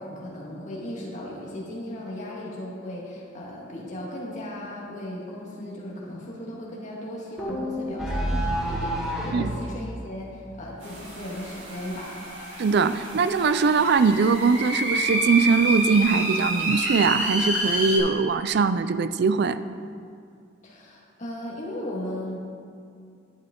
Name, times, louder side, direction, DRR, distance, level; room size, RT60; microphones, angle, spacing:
voice 1, 0.0-12.2 20.6-22.4, left 1 dB, 40° left, -4 dB, 1.9 m, -36 dB
sound 1, 7.4-9.5, equal, ahead, 1.5 m, -28 dB
sound 2, 10.8-18.0, right 1 dB, 75° right, 2.6 m, -28 dB
voice 2, 12.6-19.6, right 5 dB, 60° right, 13 dB, 0.4 m, -21 dB
11.0 x 8.1 x 3.8 m, 2.4 s
head